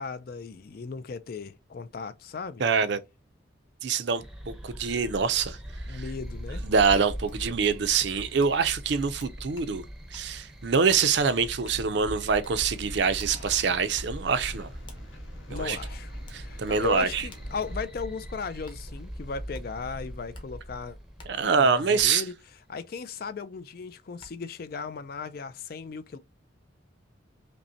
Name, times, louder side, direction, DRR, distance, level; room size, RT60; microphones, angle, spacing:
voice 1, 0.0-2.6 5.9-6.7 15.5-21.0 21.6-22.3 22.7-26.2, left 5 dB, 50° left, 0.4 m, -36 dB
voice 2, 2.6-3.0 3.8-5.6 5.9-6.0 6.6-9.8 10.1-14.7 15.5-15.8 16.3-17.2 21.3-22.2, right 5 dB, 60° right, 0.5 m, -25 dB
sound 1, 4.2-22.1, equal, 5° right, 0.6 m, -41 dB
sound 2, 7.3-7.4 7.6-7.7 8.4-8.6 8.8-9.7 10.1-10.3 10.9-11.0 11.6-11.8 12.4-12.5 13.2-13.3 13.9-14.1 14.9-15.0 15.7-15.8 16.3-18.1 18.6-18.8 19.5-19.6 20.3-20.5 21.2-21.3 22.0-22.1 23.6-23.7 24.2-24.3, left 1 dB, 25° left, 0.9 m, -47 dB
sound 3, 12.6-17.8, left 1 dB, 75° left, 1.3 m, -50 dB
5.2 x 2.1 x 2.7 m
head